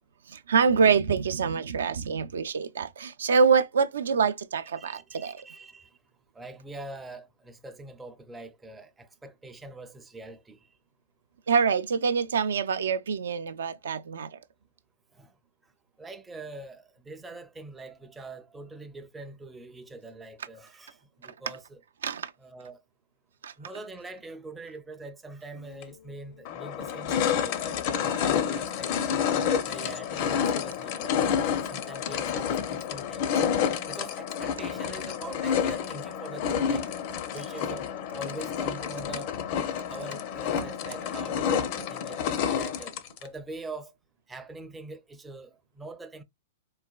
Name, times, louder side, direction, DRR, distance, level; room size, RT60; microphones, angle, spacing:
voice 1, 0.3-5.4 11.5-14.4 22.0-22.3 23.4-23.5, right 5 dB, 80° right, 0.3 m, -25 dB
voice 2, 4.8-5.9 6.4-10.6 15.2-15.3 16.0-21.8 22.4-22.8 23.6-29.3 29.7-31.3 31.7-33.6 33.9-36.9 37.3-39.3 39.9-42.3 42.6-42.9 43.2-43.9 44.3-46.2, right 2 dB, 10° right, 0.4 m, -43 dB
sound 1, 25.8-25.9 26.5-43.3, left 8 dB, 45° left, 0.5 m, -29 dB
4.0 x 2.2 x 2.3 m
hypercardioid pair, 130°, 0 cm